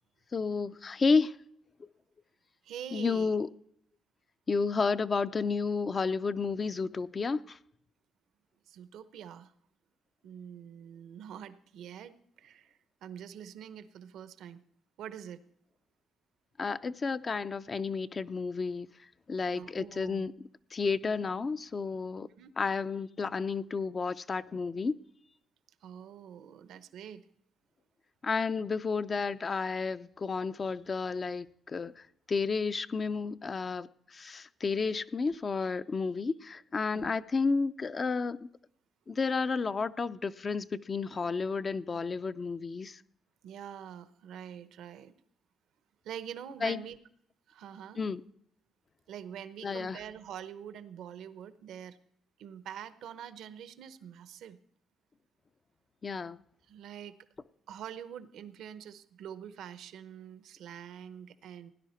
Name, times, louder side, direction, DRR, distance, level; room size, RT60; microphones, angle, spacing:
voice 1, 0.3-1.4 2.9-3.5 4.5-7.6 16.6-18.9 19.3-20.3 20.7-22.3 22.6-25.0 28.2-38.5 39.1-43.0 46.6-46.8 48.0-48.2 49.6-50.0 56.0-56.4, left 4 dB, 35° left, 0.5 m, -31 dB
voice 2, 2.6-3.4 8.7-9.5 10.2-14.6 15.0-15.4 19.5-20.3 22.4-22.5 25.8-27.3 36.9-37.1 43.4-45.1 46.0-47.0 47.5-48.0 49.1-52.0 52.4-54.6 56.7-57.1 57.7-61.7, right 9 dB, 80° right, 0.8 m, -45 dB
17.0 x 10.0 x 4.4 m
cardioid pair, 90°, 0 cm